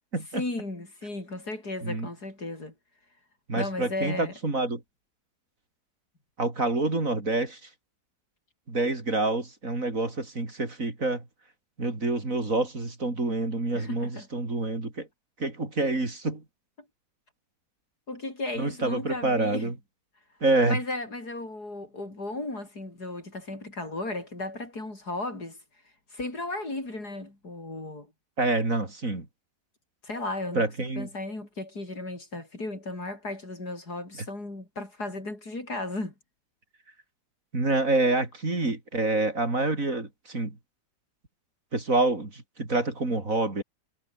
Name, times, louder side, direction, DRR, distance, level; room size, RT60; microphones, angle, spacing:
voice 1, 0.3-2.7 3.5-4.3 13.7-14.3 18.1-19.7 20.6-25.6 26.1-28.1 30.0-30.6 31.0-36.1, left 2 dB, 65° left, 7.0 m, -35 dB
voice 2, 3.5-4.8 6.4-7.6 8.7-11.2 11.8-15.1 15.4-16.4 18.6-19.7 20.4-20.8 28.4-29.3 30.5-31.1 37.5-40.6 41.7-43.6, right 2 dB, 50° right, 4.7 m, -27 dB
omnidirectional pair, 1.8 m